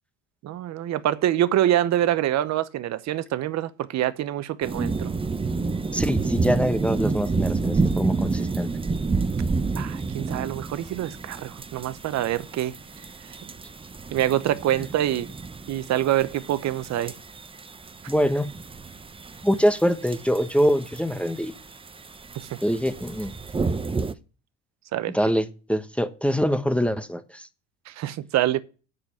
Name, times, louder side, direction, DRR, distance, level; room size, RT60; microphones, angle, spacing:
voice 1, 0.4-5.1 9.8-12.7 13.2-13.4 14.1-15.3 15.7-17.1 24.9-25.2 27.9-28.6, right 12 dB, 55° right, 0.9 m, -25 dB
sound 1, 4.6-24.1, right 4 dB, 15° right, 0.8 m, -30 dB
voice 2, 5.9-8.7 18.1-18.5 19.4-21.5 22.6-23.3 25.1-27.5, equal, 5° left, 1.0 m, -24 dB
8.1 x 6.8 x 7.1 m
supercardioid pair, 80°, 33 cm